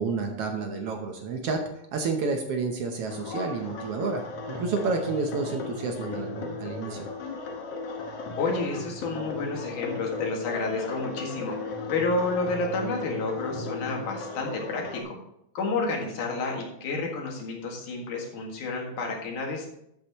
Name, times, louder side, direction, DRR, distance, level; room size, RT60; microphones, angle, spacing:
voice 1, 0.0-1.6 1.9-4.2 4.5-7.1, right 4 dB, 65° right, 4 dB, 1.6 m, -30 dB
sound 1, 3.1-15.0, left 3 dB, 60° left, 1.9 m, -36 dB
voice 2, 8.4-15.2 15.5-19.7, left 3 dB, 85° left, 0 dB, 3.4 m, -30 dB
11.5 x 8.3 x 3.0 m, 0.80 s
omnidirectional pair, 3.6 m